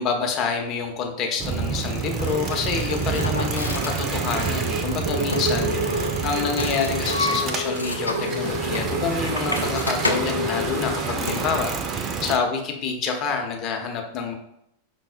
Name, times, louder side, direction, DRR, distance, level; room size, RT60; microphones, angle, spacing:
voice 1, 0.0-14.3, left 5 dB, 35° left, 2 dB, 0.6 m, -27 dB
sound 1, 1.4-12.4, right 6 dB, 30° right, 0.3 m, -28 dB
sound 2, 2.2-11.6, left 1 dB, 80° left, 0.3 m, -29 dB
5.2 x 2.0 x 2.4 m, 0.77 s
figure-of-eight pair, 90°, 0 cm